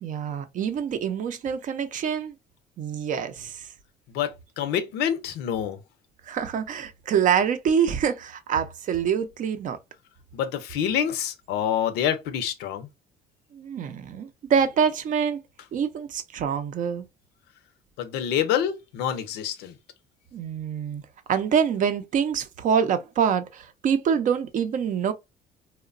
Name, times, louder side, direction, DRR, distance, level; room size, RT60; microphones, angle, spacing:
voice 1, 0.0-2.3 2.8-3.7 6.3-9.8 13.5-15.4 15.7-17.0 20.3-21.0 21.3-25.1, right 7 dB, 50° right, 0.5 m, -25 dB
voice 2, 4.1-5.8 10.3-12.9 18.0-19.7, left 9 dB, 90° left, 0.6 m, -27 dB
2.9 x 2.1 x 2.4 m
cardioid pair, 110°, 17 cm